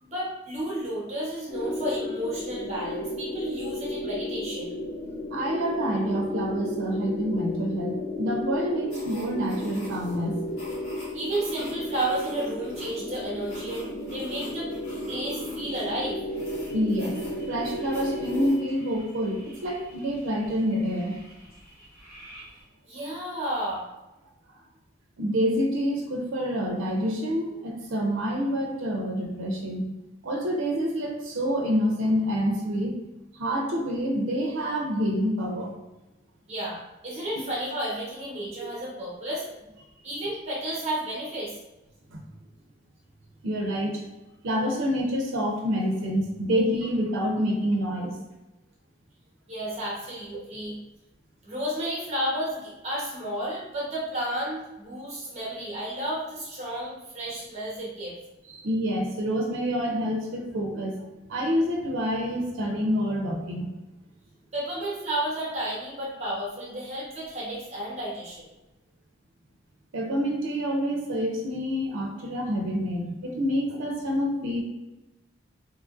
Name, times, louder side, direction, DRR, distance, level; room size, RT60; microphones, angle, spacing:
voice 1, 0.0-4.7 11.1-14.7 15.1-16.2 22.9-23.9 36.5-39.4 40.0-41.5 49.5-50.8 51.4-58.2 64.5-68.5, right 1 dB, 35° right, -5 dB, 0.9 m, -32 dB
sound 1, 1.5-18.5, left 1 dB, 30° left, 0.7 m, -33 dB
voice 2, 5.3-10.4 16.7-17.2 17.5-21.2 25.2-29.9 30.2-33.0 33.3-35.8 42.1-42.2 43.4-44.0 44.4-48.2 58.5-63.7 69.9-74.6, equal, 85° right, 0 dB, 0.4 m, -27 dB
sound 2, 8.9-18.6, left 1 dB, 80° left, 1.1 m, -48 dB
sound 3, 16.3-22.6, equal, 50° left, 1.1 m, -51 dB
2.8 x 2.4 x 2.4 m, 1.0 s
head